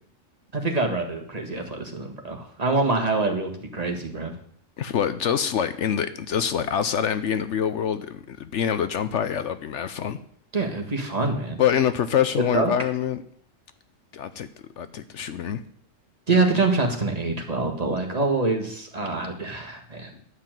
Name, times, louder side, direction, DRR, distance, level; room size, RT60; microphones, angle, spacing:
voice 1, 0.5-4.3 10.5-11.6 12.5-12.7 16.3-20.1, right 3 dB, 30° right, 2 dB, 1.7 m, -25 dB
voice 2, 4.8-10.2 11.6-13.2 14.1-14.5 14.8-15.6 20.1-20.2, left 8 dB, 65° left, 12 dB, 1.0 m, -25 dB
11.5 x 5.8 x 9.0 m, 0.64 s
omnidirectional pair, 1.4 m